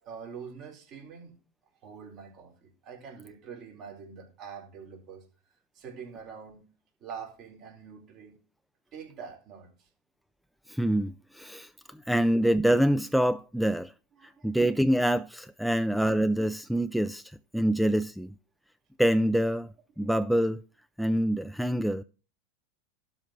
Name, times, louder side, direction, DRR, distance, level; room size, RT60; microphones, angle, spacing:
voice 1, 0.0-1.3 1.8-5.2 5.7-6.7 7.0-8.4 8.9-9.9 11.9-12.0 14.2-14.5 20.0-20.1, right 6 dB, 45° right, 4.1 m, -45 dB
voice 2, 10.7-11.7 12.1-13.9 14.4-17.2 17.5-18.3 19.0-19.7 20.0-20.6 21.0-22.0, right 1 dB, ahead, 0.5 m, -25 dB
12.0 x 4.5 x 6.5 m
hypercardioid pair, 95°, 0 cm